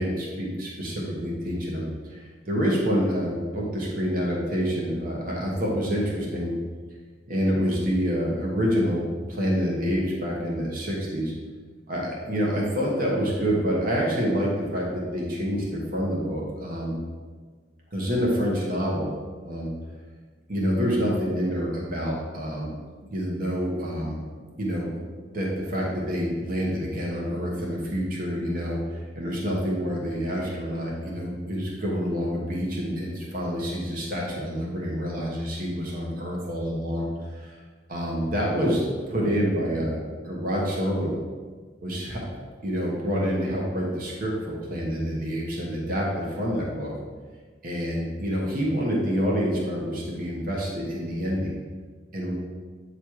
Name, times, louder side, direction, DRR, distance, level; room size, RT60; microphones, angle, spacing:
voice 1, 0.0-6.5 7.3-11.3 11.9-17.0 17.9-19.1 19.4-19.7 20.5-22.7 23.1-24.2 24.6-25.0 25.3-37.1 37.3-37.6 37.9-38.8 39.1-41.1 41.8-42.2 42.6-46.9 47.6-51.6 52.1-52.3, equal, 50° right, -3 dB, 1.3 m, -27 dB
8.5 x 3.3 x 4.6 m, 1.5 s
head